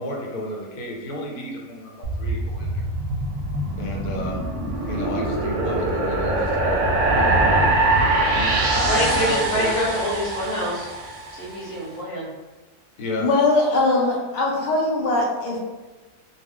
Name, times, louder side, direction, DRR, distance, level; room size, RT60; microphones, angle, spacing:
voice 1, 0.0-2.9 3.8-4.4 4.9-6.8 7.2-7.5 8.3-9.8 13.0-13.3, left 1 dB, 85° left, -1 dB, 1.1 m, -31 dB
sound 1, 2.0-11.4, right 2 dB, 65° right, 0.8 m, -23 dB
voice 2, 8.8-10.9 11.3-12.3, equal, 30° left, -6 dB, 0.8 m, -26 dB
voice 3, 13.2-15.6, left 2 dB, 65° left, -3 dB, 0.5 m, -21 dB
2.4 x 2.2 x 3.5 m, 1.2 s
omnidirectional pair, 1.6 m